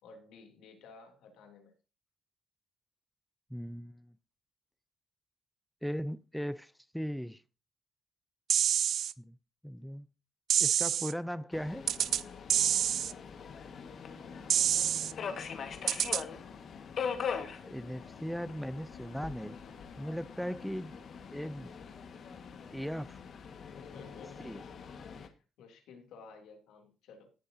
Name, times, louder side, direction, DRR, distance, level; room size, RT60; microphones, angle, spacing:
voice 1, 0.0-1.7 14.6-16.0 23.7-27.3, left 4 dB, 85° left, 2.9 m, -55 dB
voice 2, 3.5-4.1 5.8-7.4 9.2-9.4 9.6-10.1 10.6-11.8 17.6-19.6 20.0-21.0 21.3-21.7 22.7-23.2 24.4-24.6, equal, ahead, 0.5 m, -38 dB
sound 1, 8.5-9.1 10.5-11.1 11.9-12.2 12.5-13.1 14.5-15.1 15.9-16.2, right 10 dB, 65° right, 0.4 m, -27 dB
Subway metro underground, 11.5-25.3, left 6 dB, 60° left, 1.6 m, -42 dB
17.5 x 7.6 x 2.7 m
cardioid pair, 90°, 0 cm